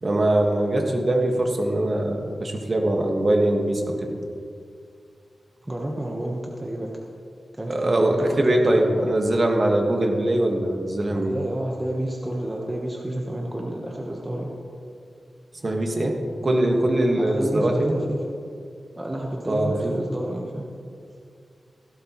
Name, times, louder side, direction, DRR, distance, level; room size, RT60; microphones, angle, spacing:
voice 1, 0.0-4.1 7.7-11.3 15.6-18.0 19.5-20.1, right 1 dB, 40° right, 2 dB, 1.5 m, -22 dB
voice 2, 5.6-7.0 7.5-9.0 11.1-14.5 17.2-18.2 18.9-20.7, right 1 dB, 20° right, -1 dB, 1.1 m, -30 dB
16.0 x 12.0 x 3.1 m, 2.4 s
wide cardioid pair, 115°, 0 cm